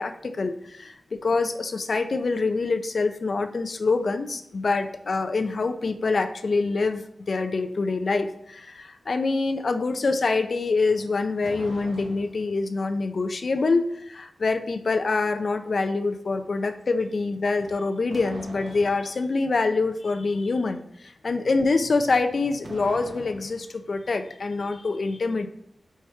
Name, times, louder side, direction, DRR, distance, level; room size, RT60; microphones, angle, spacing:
voice 1, 0.0-25.5, left 3 dB, 55° left, 8 dB, 0.5 m, -25 dB
sound 1, 10.9-12.6 17.5-19.1 22.0-23.7, right 2 dB, 45° right, 0.9 m, -43 dB
4.8 x 4.5 x 4.3 m, 0.76 s
wide cardioid pair, 115°, 0 cm